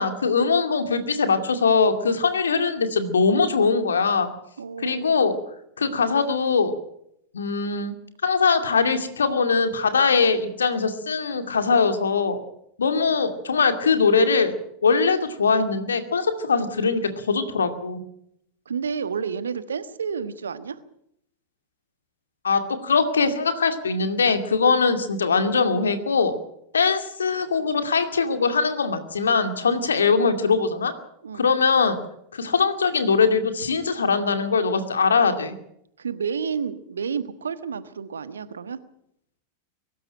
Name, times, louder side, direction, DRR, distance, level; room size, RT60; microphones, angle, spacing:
voice 1, 0.0-4.3 4.8-5.4 5.8-6.7 7.3-7.9 8.2-12.4 12.8-14.5 14.8-18.0 22.4-26.3 26.7-30.9 31.3-32.0 32.3-35.6, left 5 dB, 70° left, 8 dB, 2.4 m, -21 dB
voice 2, 4.6-5.2 13.1-13.2 18.7-20.8 31.2-31.4 36.0-38.8, right 6 dB, 70° right, 13 dB, 1.3 m, -30 dB
23.0 x 13.0 x 8.9 m, 0.75 s
figure-of-eight pair, 90°, 0 cm